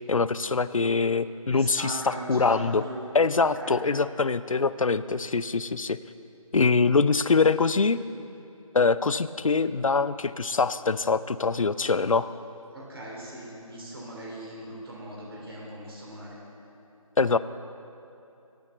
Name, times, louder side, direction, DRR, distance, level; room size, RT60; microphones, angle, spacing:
voice 1, 0.1-2.8 3.1-6.0 6.5-8.0 8.7-12.3 17.2-17.4, left 4 dB, 65° left, 15 dB, 0.4 m, -24 dB
voice 2, 1.5-3.0 3.6-3.8 12.7-16.4, right 1 dB, 40° right, -4 dB, 3.0 m, -39 dB
9.4 x 8.6 x 7.9 m, 2.8 s
figure-of-eight pair, 160°, 18 cm